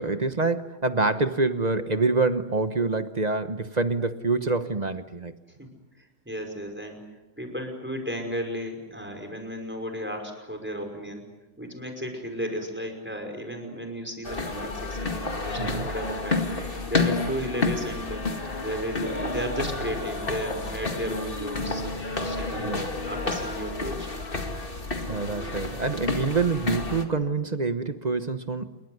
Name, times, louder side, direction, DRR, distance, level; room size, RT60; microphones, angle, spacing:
voice 1, 0.0-5.3 15.6-15.9 22.6-22.9 25.1-28.8, right 3 dB, 30° right, 10 dB, 0.8 m, -26 dB
voice 2, 6.0-7.0 7.4-11.2 11.6-18.2 18.6-22.7 23.1-24.1, equal, 5° right, 4 dB, 5.5 m, -34 dB
sound 1, 14.2-27.0, left 3 dB, 30° left, 2.2 m, -30 dB
28.5 x 23.0 x 8.0 m, 1.1 s
omnidirectional pair, 2.0 m